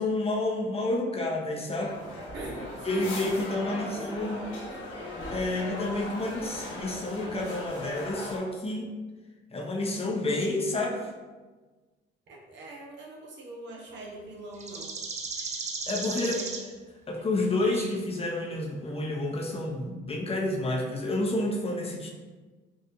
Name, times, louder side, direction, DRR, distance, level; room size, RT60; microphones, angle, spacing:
voice 1, 0.0-1.9 2.8-4.4 5.3-8.9 9.5-11.1 15.9-16.4 17.1-22.1, left 2 dB, 30° left, 0 dB, 0.6 m, -29 dB
sound 1, 1.8-8.4, left 1 dB, 85° left, 1.1 m, -38 dB
voice 2, 2.3-3.2 3.6-4.6 12.3-15.0 16.1-16.5, right 2 dB, 65° right, -2 dB, 0.9 m, -43 dB
sound 2, 14.5-16.7 17.6-18.0, right 4 dB, 35° right, 0.5 m, -36 dB
4.1 x 2.5 x 2.6 m, 1.3 s
cardioid pair, 90°, 20 cm